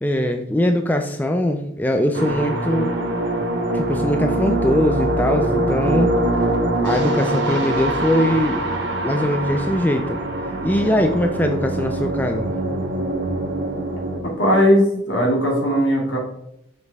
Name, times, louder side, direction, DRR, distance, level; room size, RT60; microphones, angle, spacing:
voice 1, 0.0-2.9 3.7-6.1 6.8-8.6 9.0-10.2 10.6-12.5, left 1 dB, 10° left, 5 dB, 0.3 m, -21 dB
sound 1, 2.1-14.2, right 1 dB, 65° right, 1.2 m, -23 dB
voice 2, 14.2-16.2, equal, 70° left, -2 dB, 2.3 m, -18 dB
6.4 x 5.3 x 3.5 m, 0.79 s
head